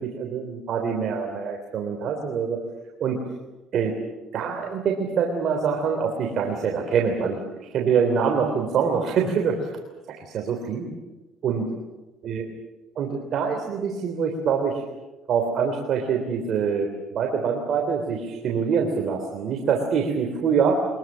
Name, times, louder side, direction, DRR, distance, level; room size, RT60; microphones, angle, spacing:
voice 1, 0.0-2.6 3.0-3.2 3.7-4.0 4.3-9.7 10.2-10.9 11.4-11.7 12.2-12.4 12.9-14.8 15.3-16.9 17.1-20.9, right 6 dB, 55° right, 2 dB, 3.4 m, -25 dB
24.0 x 21.5 x 7.6 m, 1.1 s
cardioid pair, 115°, 0 cm